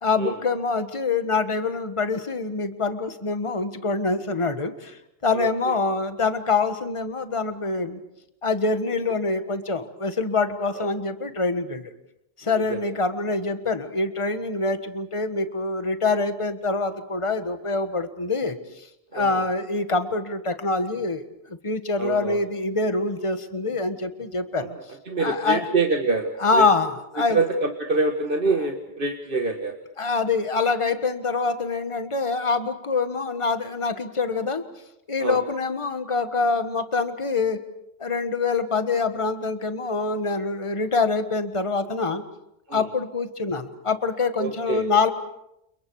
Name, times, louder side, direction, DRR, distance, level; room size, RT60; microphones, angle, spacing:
voice 1, 0.0-5.0 5.2-8.0 8.4-11.9 12.4-18.6 19.1-24.7 25.2-25.7 26.4-27.4 30.0-34.6 35.1-37.6 38.0-42.2 42.7-45.1, left 3 dB, 30° left, 8 dB, 1.5 m, -25 dB
voice 2, 5.3-5.7 19.1-19.4 22.0-22.4 24.6-24.7 25.1-26.6 27.3-29.8 35.2-35.4 42.7-42.8 44.4-44.9, right 3 dB, 55° right, 3 dB, 1.8 m, -25 dB
30.0 x 29.0 x 4.8 m, 0.81 s
omnidirectional pair, 1.1 m